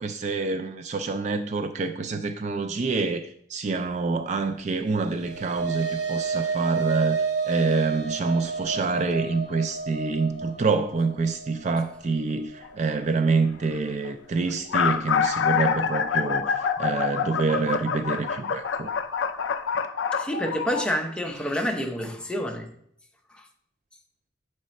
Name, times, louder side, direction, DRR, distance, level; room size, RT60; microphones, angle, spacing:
voice 1, 0.0-7.2 7.5-18.9, right 4 dB, 40° right, 0.3 m, -27 dB
sound 1, 4.9-13.4, right 5 dB, 65° right, 1.0 m, -31 dB
sound 2, 12.6-12.9 13.8-13.9 14.0-14.1 14.5-20.9, left 7 dB, 80° left, 0.4 m, -26 dB
voice 2, 20.2-22.7 23.3-23.4, equal, 5° left, 0.6 m, -28 dB
7.3 x 3.2 x 4.1 m
head